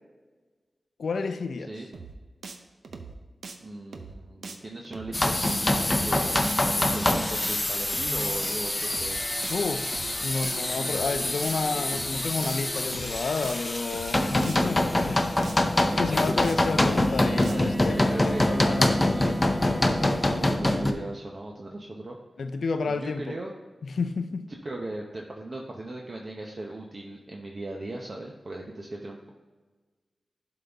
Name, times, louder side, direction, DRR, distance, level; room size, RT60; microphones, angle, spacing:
voice 1, 1.0-1.7 9.5-15.5 15.9-19.3 22.4-23.4 23.8-24.5, left 4 dB, 85° left, 9 dB, 0.4 m, -31 dB
sound 1, 1.9-2.2 2.4-2.6 2.8-3.2 3.4-3.6 3.9-4.2 4.4-4.6 4.8-5.2 5.4-5.6 5.9-6.2 6.4-6.6 6.8-7.2 7.4-7.6 7.9-8.2 8.4-8.6 8.8-9.2 9.4-9.6 9.9-10.2 10.4-10.6 10.8-11.2 11.4-11.6 11.9-12.2 12.4-12.6 12.8-13.2 13.4-13.6 13.9-14.2 14.4-14.6 14.8-15.2 15.4-15.6 15.9-16.2 16.4-16.6 16.8-17.2 17.4-17.6, right 4 dB, 85° right, 0.6 m, -41 dB
voice 2, 3.6-9.2 17.5-19.7 20.1-22.2 22.9-23.5 24.6-29.3, right 2 dB, 45° right, 0 dB, 0.7 m, -38 dB
sound 2, 5.1-20.9, left 1 dB, 25° left, 0.6 m, -25 dB
Bowed string instrument, 16.9-20.6, left 1 dB, 5° left, 1.3 m, -40 dB
11.0 x 4.0 x 3.4 m, 1.3 s
wide cardioid pair, 90°, 0 cm